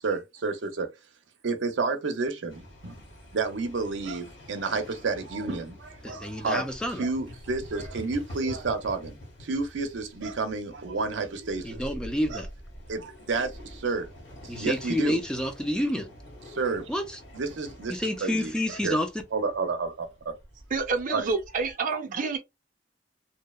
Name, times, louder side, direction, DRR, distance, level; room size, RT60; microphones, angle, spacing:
voice 1, 0.0-0.9 1.4-2.9 3.3-6.6 7.0-11.8 12.3-12.4 12.9-14.1 14.4-15.2 16.5-16.9 17.3-18.0 18.2-19.0 19.3-20.3 21.1-21.2, right 4 dB, 90° right, 0.6 m, -30 dB
sound 1, 2.5-21.7, equal, 75° left, 1.5 m, -47 dB
voice 2, 6.0-7.0 11.6-12.5 14.5-16.1 16.9-17.2 17.9-19.1, left 1 dB, 5° left, 0.3 m, -29 dB
voice 3, 20.7-22.4, right 4 dB, 45° right, 0.6 m, -28 dB
2.7 x 2.0 x 2.2 m
head